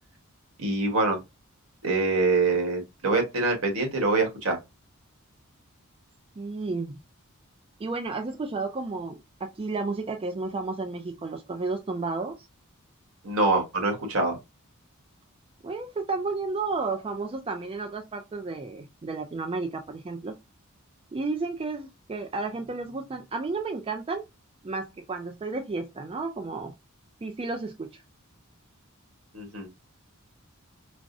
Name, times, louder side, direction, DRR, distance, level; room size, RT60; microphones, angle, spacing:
voice 1, 0.6-1.2 1.8-4.6 13.2-14.4 29.3-29.7, right 3 dB, 75° right, 1.3 m, -25 dB
voice 2, 6.4-6.9 7.8-12.5 15.6-20.3 21.1-24.2 24.6-26.7 27.2-28.0, right 3 dB, 25° right, 0.3 m, -32 dB
4.7 x 2.0 x 2.5 m
head